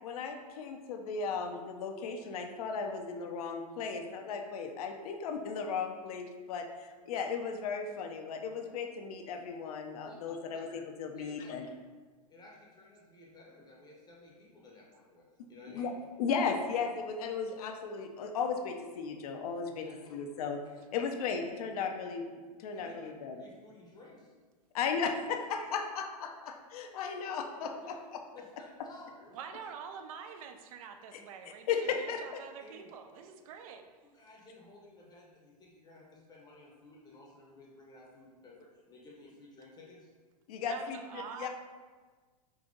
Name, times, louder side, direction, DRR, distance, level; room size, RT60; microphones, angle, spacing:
voice 1, 0.0-11.7 15.7-15.9 16.2-19.8 20.1-20.6 20.9-23.4 24.7-27.9 31.1-31.2 31.7-32.4 40.5-41.5, left 5 dB, 65° left, 4 dB, 0.5 m, -36 dB
voice 2, 11.1-11.5 12.3-15.9 19.7-20.2 22.7-23.0 23.4-24.3 27.8-28.0 28.3-29.7 31.8-31.9 32.6-32.9 33.2-33.3 34.0-40.1, left 2 dB, 20° left, -2 dB, 0.7 m, -55 dB
voice 3, 29.3-33.8 40.7-41.5, right 6 dB, 55° right, 7 dB, 0.5 m, -46 dB
3.9 x 2.8 x 3.6 m, 1.4 s
hypercardioid pair, 120°, 21 cm